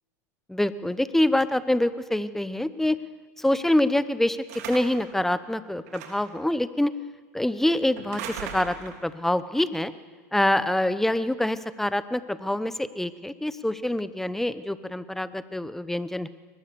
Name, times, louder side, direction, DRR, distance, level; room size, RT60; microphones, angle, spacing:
voice 1, 0.5-3.0 3.4-4.4 4.7-6.9 7.3-9.9 10.3-16.3, left 1 dB, 5° left, 14 dB, 0.9 m, -25 dB
sound 1, 4.5-5.1 5.9-6.4 8.0-9.1, right 7 dB, 75° right, 3.6 m, -38 dB
23.0 x 20.0 x 7.0 m, 1.5 s
supercardioid pair, 110°, 9 cm